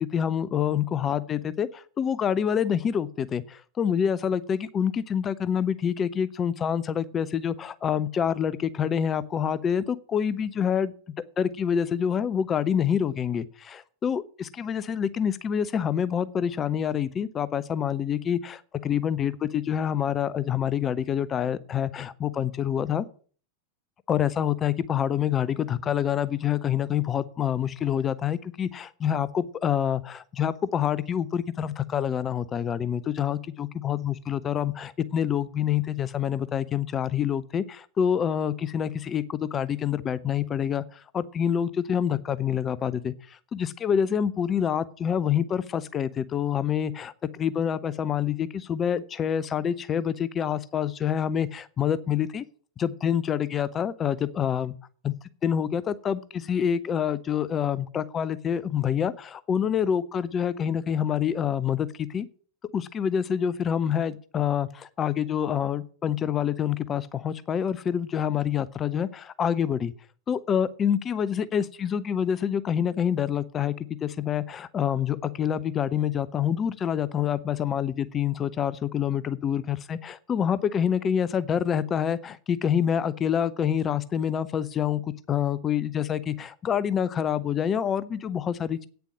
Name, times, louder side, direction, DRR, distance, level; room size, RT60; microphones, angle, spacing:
voice 1, 0.0-10.9 11.4-23.1 24.1-52.4 52.8-54.7 55.0-55.1 55.4-62.3 62.7-69.9 70.3-73.7 74.0-85.0 85.3-88.9, left 8 dB, 25° left, 16 dB, 0.6 m, -27 dB
9.1 x 7.0 x 7.2 m, 0.43 s
figure-of-eight pair, 90°, 0 cm